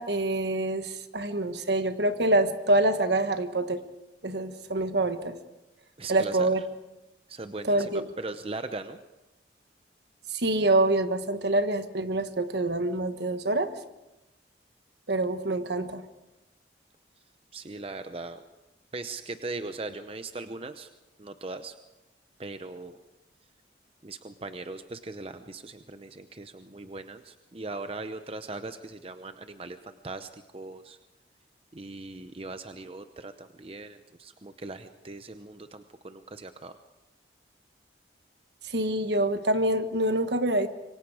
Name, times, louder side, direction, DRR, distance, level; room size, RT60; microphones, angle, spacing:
voice 1, 0.0-3.8 4.2-5.4 6.1-6.6 7.6-8.1 10.3-13.7 15.1-16.0 38.6-40.7, right 2 dB, 65° right, 9 dB, 1.4 m, -26 dB
voice 2, 6.0-6.5 7.3-9.0 17.5-18.4 18.9-20.9 21.2-21.7 22.4-23.0 24.0-31.0 31.7-36.7, right 3 dB, 30° right, 9 dB, 0.7 m, -39 dB
26.5 x 24.0 x 4.9 m, 0.98 s
head